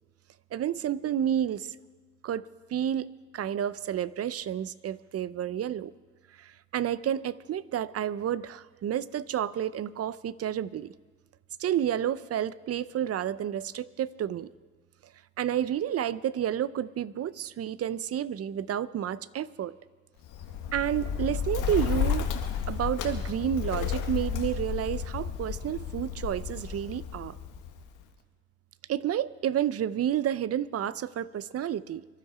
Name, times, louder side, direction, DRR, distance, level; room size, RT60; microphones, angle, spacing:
voice 1, 0.5-1.8 2.2-2.5 2.7-5.9 6.4-10.9 11.6-14.5 15.4-19.8 20.7-22.3 22.7-27.4 28.9-32.1, right 10 dB, 50° right, 18 dB, 0.6 m, -30 dB
Bird, 20.2-28.0, left 7 dB, 85° left, 1.6 m, -32 dB
25.0 x 11.5 x 4.9 m, 1.4 s
cardioid pair, 90°, 30 cm